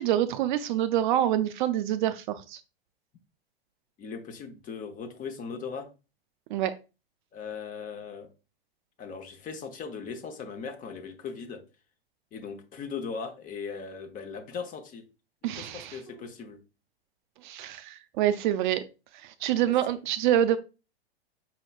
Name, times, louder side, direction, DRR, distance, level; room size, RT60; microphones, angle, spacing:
voice 1, 0.0-2.6 6.5-6.7 15.4-16.0 17.4-18.8 19.2-20.6, right 11 dB, 50° right, 0.4 m, -26 dB
voice 2, 4.0-5.9 7.3-8.3 9.0-11.6 12.3-15.0 15.4-16.6 19.4-19.5, left 5 dB, 25° left, 0.8 m, -38 dB
5.6 x 2.9 x 2.3 m
hypercardioid pair, 115°, 31 cm